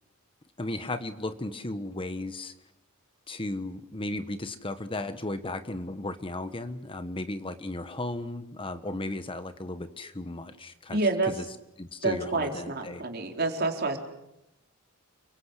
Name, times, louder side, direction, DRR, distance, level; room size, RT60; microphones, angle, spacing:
voice 1, 0.6-2.5 3.3-11.0 11.4-11.5 11.8-13.0, left 2 dB, 25° left, 10 dB, 1.3 m, -35 dB
voice 2, 10.9-11.3 12.0-14.0, right 3 dB, 45° right, 3 dB, 4.0 m, -28 dB
30.0 x 23.5 x 8.3 m, 0.88 s
head